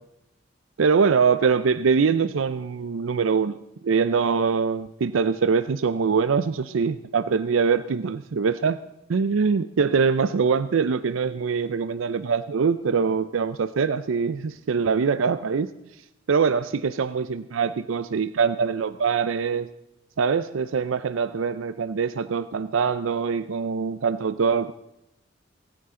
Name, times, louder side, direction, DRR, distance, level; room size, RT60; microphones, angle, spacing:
voice 1, 0.8-8.8 9.1-15.7 16.3-19.7 20.2-24.7, right 5 dB, 85° right, 13 dB, 0.5 m, -23 dB
28.5 x 9.9 x 3.7 m, 0.89 s
head